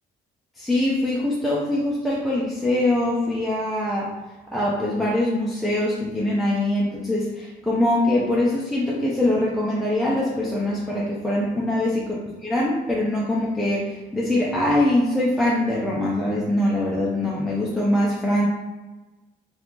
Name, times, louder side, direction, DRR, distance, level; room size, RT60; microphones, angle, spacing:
voice 1, 0.6-4.1 4.5-12.1 12.4-18.5, left 1 dB, ahead, -6 dB, 0.6 m, -23 dB
2.8 x 2.5 x 3.7 m, 1.2 s
cardioid pair, 90°, 20 cm